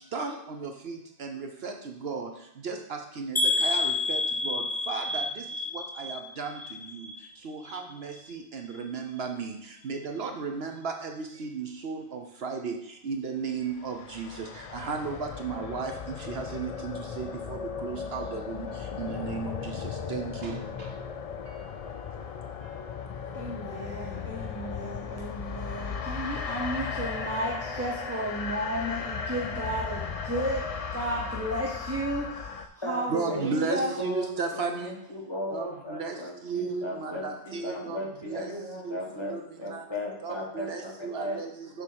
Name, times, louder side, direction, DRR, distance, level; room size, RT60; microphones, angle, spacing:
voice 1, 0.1-1.7 2.0-2.3 2.6-5.2 6.0-6.5 7.4-8.4 8.7-9.5 9.8-11.1 11.4-12.8 13.1-14.3 14.7-15.9 16.3-18.7 19.0-19.5 20.1-20.6 33.1-34.9 35.5-35.7 35.9-36.1 36.5-38.0 38.2-38.5 38.9-39.0 39.3-39.4 39.7-39.8 40.2-41.7, right 5 dB, 60° right, 4 dB, 0.9 m, -34 dB
sound 1, 3.4-7.3 7.6-8.2 8.7-8.8 9.2-9.3, left 2 dB, 10° left, 0.8 m, -30 dB
sound 2, 13.7-32.7, left 6 dB, 60° left, 0.3 m, -36 dB
voice 2, 23.3-33.9, right 1 dB, 15° right, -3 dB, 0.6 m, -33 dB
voice 3, 33.7-41.4, left 1 dB, 25° left, -2 dB, 1.3 m, -36 dB
6.7 x 3.7 x 6.2 m, 0.73 s
omnidirectional pair, 1.2 m